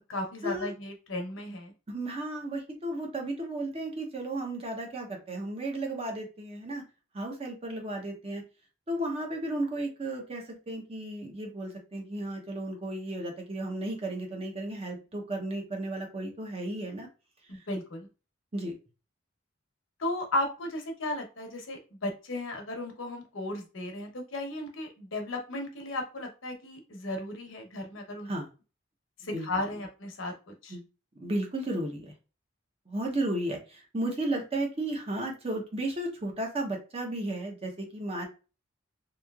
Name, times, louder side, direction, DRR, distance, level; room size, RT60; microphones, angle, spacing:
voice 1, 0.1-1.7 17.5-18.1 20.0-28.3 29.2-30.8, left 1 dB, 80° left, 3 dB, 0.9 m, -35 dB
voice 2, 1.9-6.8 7.1-8.4 8.9-17.1 17.5-17.6 18.5-18.7 28.2-28.5 29.3-29.4 30.7-30.8 31.2-32.1 32.9-38.3, right 1 dB, 30° right, 1 dB, 0.7 m, -34 dB
3.1 x 2.7 x 2.3 m, 0.32 s
head